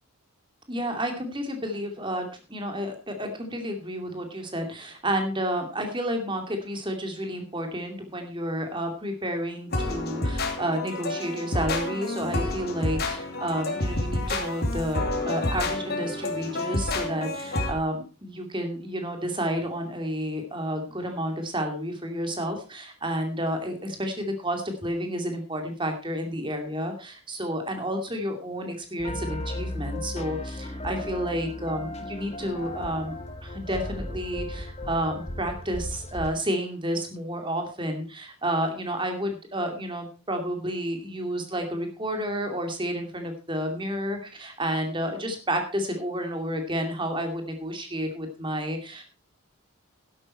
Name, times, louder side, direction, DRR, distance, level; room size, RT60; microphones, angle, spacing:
voice 1, 0.7-33.2 33.4-49.0, equal, 20° right, 5 dB, 2.5 m, -30 dB
sound 1, 9.7-17.7, left 2 dB, 45° left, 2.6 m, -29 dB
sound 2, 29.0-36.3, left 1 dB, 30° left, 1.6 m, -35 dB
12.5 x 11.0 x 4.3 m, 0.33 s
head